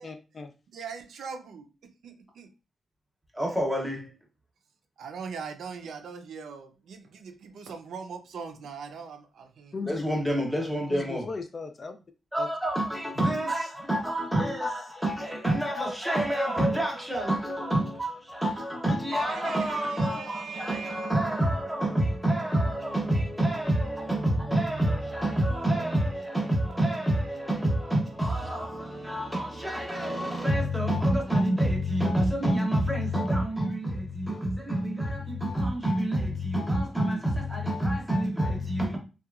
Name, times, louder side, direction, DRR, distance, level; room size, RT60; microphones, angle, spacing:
voice 1, 0.0-0.5 9.7-10.0 10.9-12.0 12.4-12.5, left 4 dB, 35° left, 0.3 m, -37 dB
voice 2, 0.7-2.5 5.0-9.8 19.1-21.1, right 5 dB, 80° right, 0.4 m, -41 dB
voice 3, 3.3-4.1 9.8-11.3 12.3-39.0, right 1 dB, ahead, 0.7 m, -27 dB
2.8 x 2.3 x 2.3 m
wide cardioid pair, 135°, 0 cm